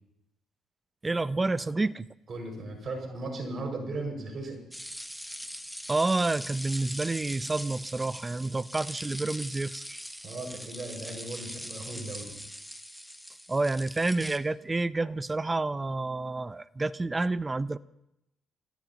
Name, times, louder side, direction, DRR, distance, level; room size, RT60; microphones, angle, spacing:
voice 1, 1.0-2.1 5.9-10.0 13.5-17.8, right 2 dB, 25° right, 16 dB, 0.6 m, -29 dB
voice 2, 2.3-4.6 10.2-12.4, right 2 dB, 50° right, 2 dB, 5.8 m, -37 dB
sound 1, 4.7-14.4, equal, ahead, 1.3 m, -41 dB
28.0 x 16.5 x 2.9 m, 0.86 s
supercardioid pair, 60°, 0 cm